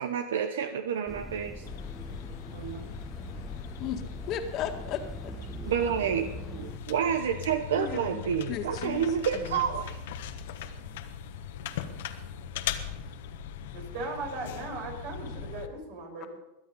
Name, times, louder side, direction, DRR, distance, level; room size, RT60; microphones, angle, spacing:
voice 1, 0.0-1.7 2.5-2.8 5.6-9.9, right 8 dB, 80° right, 8 dB, 0.9 m, -29 dB
sound 1, 1.1-6.8, right 1 dB, 5° right, 1.1 m, -42 dB
sound 2, 1.7-15.7, left 9 dB, 75° left, 1.4 m, -40 dB
voice 2, 3.8-5.3 7.8-9.1 9.3-9.6, left 9 dB, 45° left, 5 dB, 1.9 m, -36 dB
voice 3, 13.7-16.4, right 2 dB, 65° right, 1 dB, 6.7 m, -38 dB
22.5 x 9.1 x 5.6 m, 0.94 s
hypercardioid pair, 110°, 0 cm